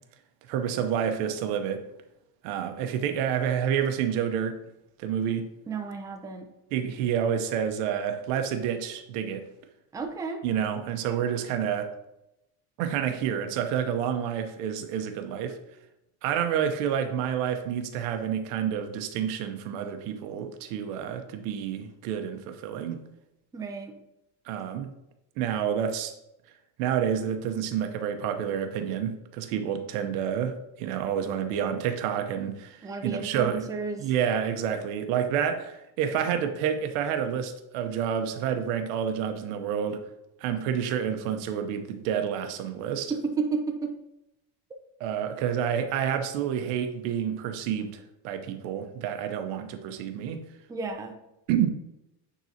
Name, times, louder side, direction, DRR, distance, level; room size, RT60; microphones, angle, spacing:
voice 1, 0.5-1.8 2.4-4.6 5.0-5.5 6.7-9.4 10.4-11.9 12.8-15.6 16.2-23.0 24.5-24.9 25.4-26.1 26.8-33.7 34.0-40.0 40.4-43.1 45.0-50.4 51.5-51.7, right 8 dB, 90° right, 0.9 m, -29 dB
voice 2, 5.7-6.5 9.9-10.4 23.5-23.9 32.8-34.1 43.1-43.9 50.7-51.1, right 4 dB, 10° right, 0.4 m, -32 dB
9.2 x 3.9 x 2.8 m
cardioid pair, 145°, 40 cm